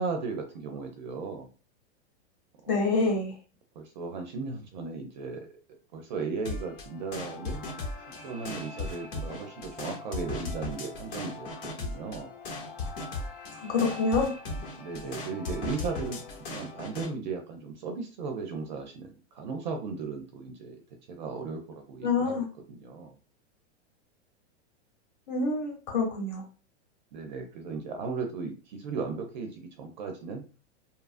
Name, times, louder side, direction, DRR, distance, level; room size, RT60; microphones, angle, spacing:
voice 1, 0.0-1.5 2.6-2.8 3.8-5.5 5.9-7.7 8.2-12.3 14.8-16.2 16.5-20.8 21.1-23.2 27.1-30.4, right 4 dB, 45° right, 4 dB, 0.4 m, -36 dB
voice 2, 2.7-3.3 13.6-14.3 22.0-22.5 25.3-26.4, left 3 dB, 25° left, -1 dB, 0.9 m, -27 dB
sound 1, 6.4-17.1, left 3 dB, 50° left, 0.8 m, -38 dB
2.7 x 2.4 x 2.4 m, 0.35 s
supercardioid pair, 165°, 35 cm